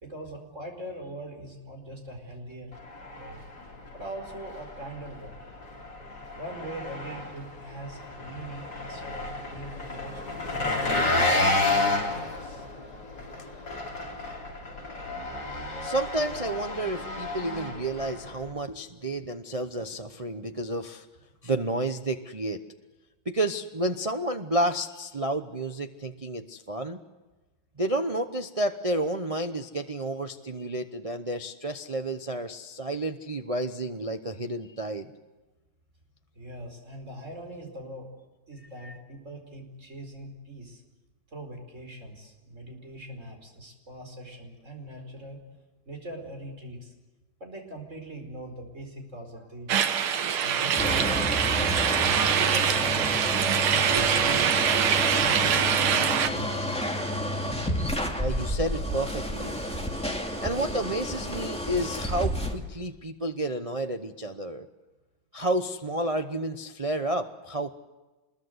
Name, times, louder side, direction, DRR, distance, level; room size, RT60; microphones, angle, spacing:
voice 1, 0.0-2.8 3.1-3.4 3.9-5.4 6.3-10.6 11.1-12.6 36.3-38.1 38.5-40.8 41.3-45.4 45.9-46.9 47.4-50.0 50.4-51.7 52.2-54.7 54.9-56.9, right 1 dB, 35° right, 3 dB, 5.0 m, -41 dB
Engine, 2.7-18.5, left 2 dB, 50° left, 4.4 m, -31 dB
voice 2, 15.8-21.1 21.4-22.6 23.2-27.0 27.8-35.1 38.8-38.9 58.2-59.6 60.4-64.7 65.3-67.9, right 1 dB, 55° right, 6 dB, 0.3 m, -30 dB
sound 1, 49.7-56.3, right 8 dB, 90° right, 2.0 m, -24 dB
sound 2, 50.8-62.5, equal, 5° left, 2.4 m, -30 dB
25.5 x 21.5 x 8.0 m, 1.2 s
omnidirectional pair, 2.3 m